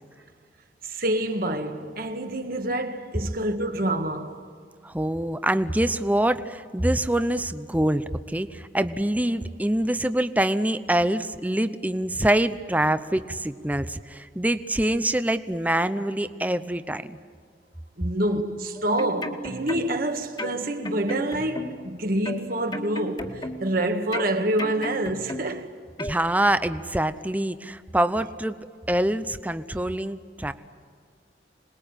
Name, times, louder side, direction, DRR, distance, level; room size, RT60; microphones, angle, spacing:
voice 1, 0.8-4.4 18.0-25.7, right 1 dB, 55° right, 1.8 m, -27 dB
voice 2, 4.8-17.2 26.0-28.6 28.9-30.5, right 1 dB, 10° right, 0.7 m, -25 dB
sound 1, 18.8-20.0 20.4-21.9 22.2-23.8 24.1-25.6 26.0-26.2, left 1 dB, 25° left, 2.0 m, -34 dB
26.5 x 20.5 x 9.0 m
head